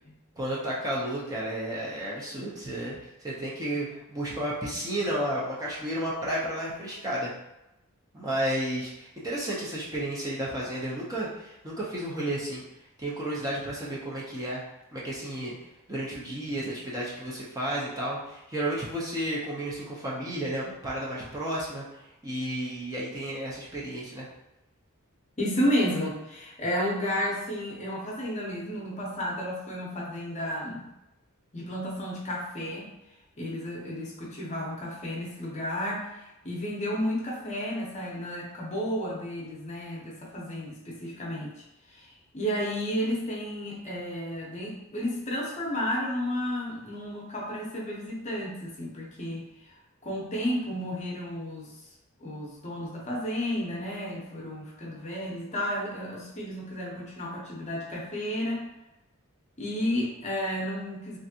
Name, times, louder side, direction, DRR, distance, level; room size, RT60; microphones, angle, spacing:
voice 1, 0.4-7.3 8.1-12.6 13.0-14.6 14.9-15.5 15.9-24.3, right 1 dB, 15° right, -6 dB, 0.6 m, -32 dB
voice 2, 25.4-30.9 31.5-32.9 33.4-41.5 41.9-49.5 50.0-51.7 52.2-58.7 59.6-61.2, equal, 35° left, -3 dB, 0.7 m, -32 dB
3.3 x 2.5 x 2.7 m, 0.90 s
head